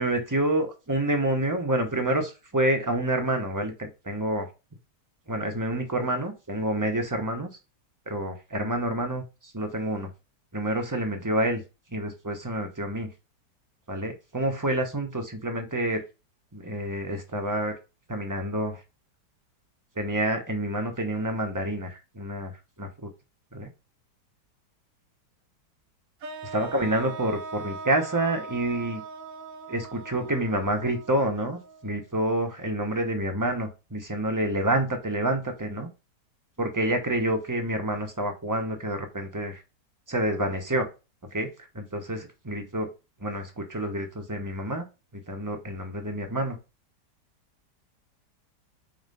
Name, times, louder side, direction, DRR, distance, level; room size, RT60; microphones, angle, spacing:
voice 1, 0.0-4.5 5.3-7.5 8.1-10.1 10.5-11.6 11.9-13.1 13.9-16.0 16.5-17.7 18.1-18.8 20.0-22.5 22.8-23.1 23.5-23.7 26.5-29.0 29.7-35.9 36.6-39.6 40.1-40.9 41.3-42.9 43.2-44.8 45.1-46.6, right 1 dB, 15° right, 4 dB, 0.9 m, -28 dB
sound 1, 26.2-32.3, right 4 dB, 60° right, 1.1 m, -41 dB
4.3 x 4.0 x 5.4 m, 0.28 s
omnidirectional pair, 1.8 m